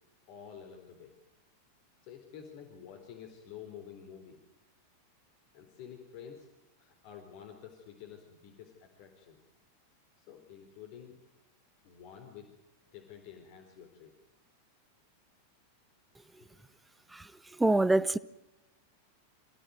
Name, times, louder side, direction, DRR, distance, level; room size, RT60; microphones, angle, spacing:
voice 1, 0.3-1.1 2.0-4.4 5.5-6.5 6.8-9.4 10.2-11.2 11.8-12.5 12.9-14.1 16.7-16.8, left 8 dB, 45° left, 3.9 m, -49 dB
voice 2, 17.6-18.2, right 2 dB, 5° right, 0.8 m, -25 dB
27.5 x 15.5 x 9.4 m
figure-of-eight pair, 90°, 0 cm